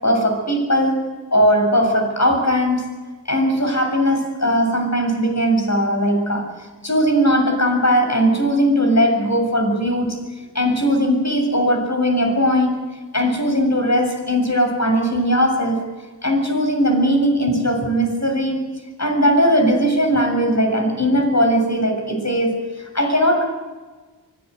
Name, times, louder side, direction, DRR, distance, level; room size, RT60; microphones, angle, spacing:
voice 1, 0.0-1.0 1.3-2.9 3.3-6.5 6.8-10.2 10.5-12.8 13.1-15.8 16.2-18.7 19.0-23.4, equal, 40° left, 3 dB, 7.4 m, -19 dB
24.0 x 18.5 x 8.1 m, 1.3 s
wide cardioid pair, 60°, 44 cm